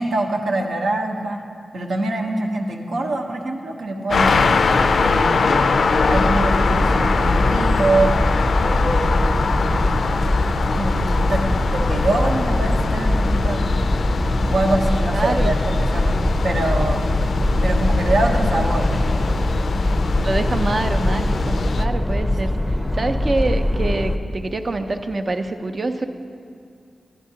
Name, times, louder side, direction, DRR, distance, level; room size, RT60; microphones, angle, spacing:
voice 1, 0.0-1.4 1.7-4.5 4.9-8.1 8.6-9.9 10.7-11.4 11.7-13.6 14.5-16.2 16.4-17.0 17.6-18.9, right 2 dB, 85° right, 1 dB, 0.9 m, -24 dB
sound 1, 4.1-21.9, left 4 dB, 75° left, 0.3 m, -22 dB
sound 2, 6.0-24.2, left 1 dB, 15° left, 0.5 m, -22 dB
voice 2, 15.1-15.5 18.4-18.5 20.2-26.1, right 2 dB, 50° right, 7 dB, 0.5 m, -25 dB
11.0 x 10.5 x 2.8 m, 2.3 s
cardioid pair, 65°, 0 cm